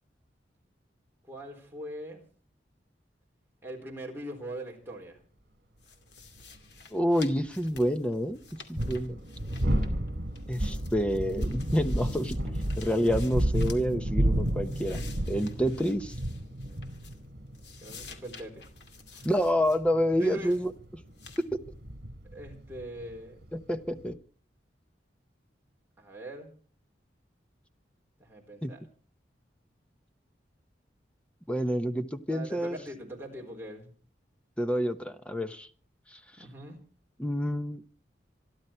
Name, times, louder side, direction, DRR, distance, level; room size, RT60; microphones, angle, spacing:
voice 1, 1.2-2.2 3.6-5.2 17.8-18.7 19.1-19.3 20.2-20.6 22.2-23.4 26.0-26.5 28.2-28.9 32.3-33.9 36.4-36.8, right 1 dB, 10° right, 0 dB, 3.9 m, -42 dB
sound 1, 5.8-10.1 10.3-13.9 14.3-17.3 17.5-19.8 20.2-20.7 21.2-21.5, left 4 dB, 70° left, 2.4 m, -51 dB
sound 2, 6.4-6.5 8.5-24.1, right 1 dB, 65° right, 2.6 m, -32 dB
voice 2, 6.9-9.2 10.5-12.4 12.7-16.1 19.2-20.7 21.5-21.6 23.5-24.2 28.6-28.7 31.5-32.8 34.6-35.7 36.1-36.2 37.2-37.8, equal, 5° left, 10 dB, 0.8 m, -28 dB
26.5 x 11.5 x 4.4 m, 0.41 s
head